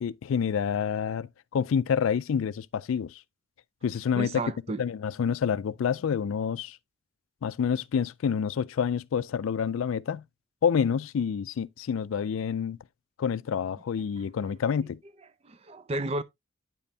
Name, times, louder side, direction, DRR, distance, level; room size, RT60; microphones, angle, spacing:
voice 1, 0.0-3.2 3.8-4.4 4.8-6.8 7.4-10.2 10.6-12.8 13.2-15.0, left 7 dB, 80° left, 0.3 m, -28 dB
voice 2, 4.1-4.8 15.4-16.2, right 2 dB, 30° right, 0.4 m, -32 dB
9.2 x 5.3 x 2.7 m
head